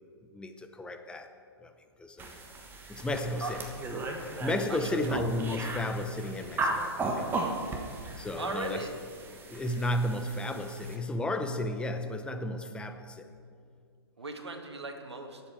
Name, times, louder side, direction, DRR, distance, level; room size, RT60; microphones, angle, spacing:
voice 1, 0.3-1.3 1.6-1.7 2.0-2.4 2.9-7.3 8.2-8.9 9.5-13.2, left 1 dB, 5° left, 7 dB, 0.7 m, -33 dB
sound 1, 2.2-11.0, right 2 dB, 15° right, 1.3 m, -36 dB
voice 2, 4.7-5.1 8.4-8.9 14.2-15.4, right 3 dB, 80° right, 4 dB, 1.7 m, -37 dB
22.0 x 7.7 x 4.7 m, 2.2 s
figure-of-eight pair, 120°, 14 cm